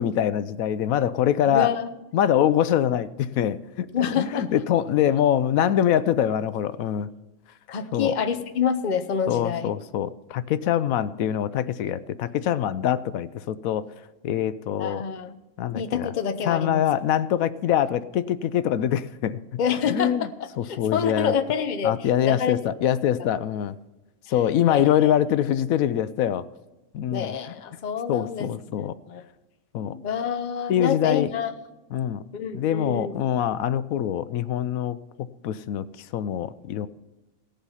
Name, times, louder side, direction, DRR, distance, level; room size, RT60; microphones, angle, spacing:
voice 1, 0.0-1.7 2.1-7.1 7.9-8.1 9.3-13.9 14.2-15.0 15.6-16.1 16.4-19.6 19.9-20.3 20.6-21.3 21.8-23.8 24.3-26.5 26.9-27.3 28.1-29.0 29.7-30.0 30.7-31.3 31.9-32.2 32.5-35.0 35.4-35.9 36.1-36.9, left 10 dB, 80° left, 15 dB, 1.0 m, -24 dB
voice 2, 1.5-1.9 3.9-4.5 7.7-9.7 14.8-15.4 15.7-16.8 19.6-22.6 24.7-25.1 27.1-29.2 30.0-31.5 32.3-33.1, left 7 dB, 40° left, 9 dB, 0.8 m, -27 dB
17.5 x 7.2 x 5.6 m, 1.1 s
omnidirectional pair, 1.4 m